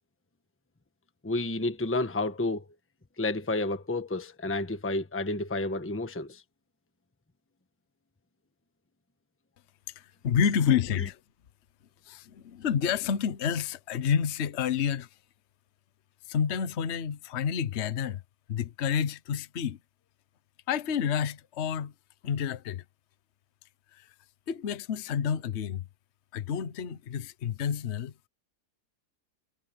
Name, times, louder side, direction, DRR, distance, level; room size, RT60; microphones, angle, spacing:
voice 1, 1.2-2.7 3.2-6.4 11.0-11.1, left 2 dB, 10° left, 1.1 m, -30 dB
voice 2, 10.0-11.2 12.1-15.1 16.3-18.2 18.5-19.8 20.7-21.9 22.2-22.8 23.9-24.1 24.5-25.8 26.3-28.1, left 7 dB, 50° left, 1.1 m, -29 dB
omnidirectional pair, 1.8 m